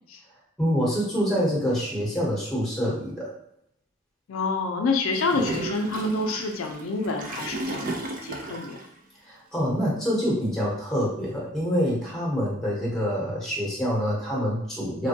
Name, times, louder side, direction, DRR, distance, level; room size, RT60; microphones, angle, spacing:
voice 1, 0.6-3.3 9.2-15.1, equal, ahead, -6 dB, 1.0 m, -26 dB
voice 2, 4.3-7.9 8.2-8.8, left 3 dB, 90° left, 2 dB, 0.4 m, -27 dB
Gurgling / Toilet flush, 5.1-8.9, right 2 dB, 40° right, 0.4 m, -34 dB
3.2 x 2.2 x 2.7 m, 0.76 s
head